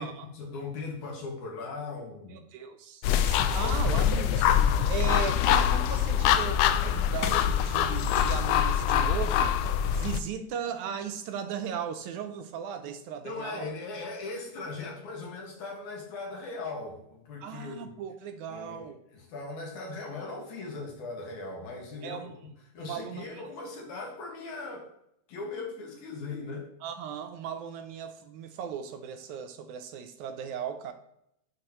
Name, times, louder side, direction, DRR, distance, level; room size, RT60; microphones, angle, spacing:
voice 1, 0.3-2.4 13.2-17.9 18.5-22.3 22.7-24.9 25.3-26.7, left 3 dB, 70° left, 2.9 m, -39 dB
voice 2, 2.3-13.7 17.4-19.0 22.0-22.3 22.8-23.5 26.8-30.9, right 8 dB, 80° right, 1.9 m, -37 dB
sound 1, 3.0-10.2, left 9 dB, 90° left, 2.1 m, -24 dB
11.0 x 4.3 x 2.9 m
omnidirectional pair, 3.6 m